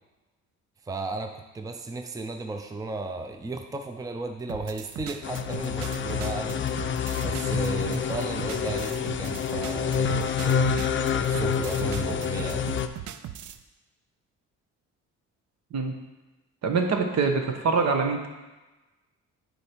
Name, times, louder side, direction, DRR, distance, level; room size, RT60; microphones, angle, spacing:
voice 1, 0.8-6.6 7.2-10.7 11.3-12.7, right 3 dB, 10° right, 5 dB, 0.6 m, -35 dB
sound 1, 4.5-13.6, right 11 dB, 75° right, 0.5 m, -39 dB
sound 2, 5.2-12.9, left 6 dB, 40° left, 0.5 m, -27 dB
voice 2, 16.6-18.3, right 4 dB, 60° right, 4 dB, 1.2 m, -25 dB
8.5 x 4.5 x 4.6 m, 1.1 s
cardioid pair, 90°, 30 cm